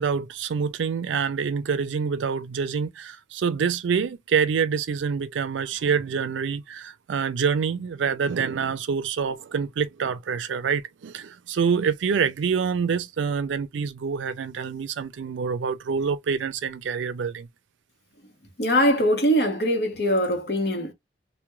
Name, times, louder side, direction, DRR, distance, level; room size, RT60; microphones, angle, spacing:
voice 1, 0.0-17.5, right 6 dB, 90° right, 0.4 m, -26 dB
voice 2, 18.6-20.9, equal, 60° left, 0.8 m, -22 dB
2.2 x 2.1 x 3.0 m
head